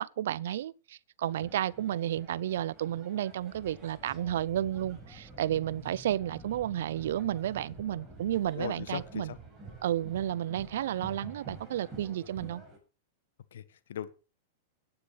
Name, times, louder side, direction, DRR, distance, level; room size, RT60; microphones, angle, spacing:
voice 1, 0.0-9.3 9.8-12.6, right 12 dB, 75° right, 0.6 m, -32 dB
sound 1, 1.3-12.8, right 3 dB, 20° right, 5.7 m, -50 dB
sound 2, 3.5-10.3 10.8-10.9, right 1 dB, ahead, 3.1 m, -52 dB
voice 2, 8.5-9.4 13.5-14.1, left 10 dB, 80° left, 1.3 m, -39 dB
10.5 x 9.7 x 5.8 m
hypercardioid pair, 125°, 0 cm